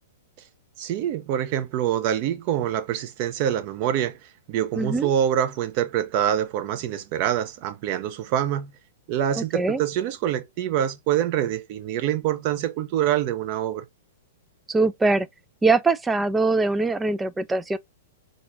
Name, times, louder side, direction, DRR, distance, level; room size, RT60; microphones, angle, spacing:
voice 1, 0.8-8.7 9.1-13.9, right 10 dB, 50° right, 0.8 m, -25 dB
voice 2, 4.8-5.1 9.4-9.8 14.7-15.3 15.6-17.8, right 3 dB, 10° right, 0.4 m, -22 dB
4.0 x 2.4 x 3.1 m
hypercardioid pair, 115°, 0 cm